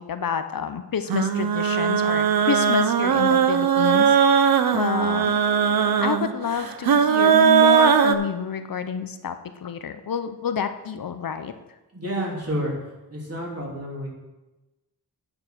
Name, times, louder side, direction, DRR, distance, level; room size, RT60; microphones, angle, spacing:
voice 1, 0.0-4.2 4.7-5.3 6.0-9.4 9.6-11.5, left 7 dB, 60° left, 9 dB, 0.7 m, -28 dB
sound 1, 1.1-8.1, right 7 dB, 65° right, 0.7 m, -19 dB
voice 2, 11.9-12.7 13.1-14.1, equal, 40° right, -3 dB, 3.2 m, -29 dB
8.8 x 6.9 x 6.0 m, 1.1 s
wide cardioid pair, 120°, 38 cm